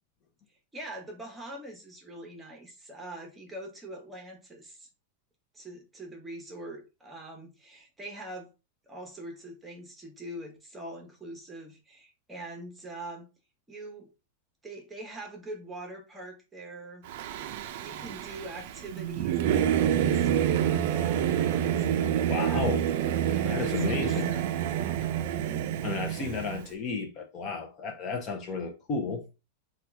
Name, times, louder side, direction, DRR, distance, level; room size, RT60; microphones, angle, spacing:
voice 1, 0.7-4.9 5.5-8.5 8.9-13.3 13.7-14.1 14.6-17.1 17.8-22.9 23.2-24.5, right 1 dB, 10° right, 0.9 m, -43 dB
Singing / Musical instrument, 17.1-26.6, right 10 dB, 60° right, 0.3 m, -28 dB
voice 2, 22.0-22.8 23.4-24.3 25.0-25.1 25.8-29.2, left 4 dB, 35° left, 0.6 m, -33 dB
2.8 x 2.3 x 3.4 m
supercardioid pair, 135°, 0 cm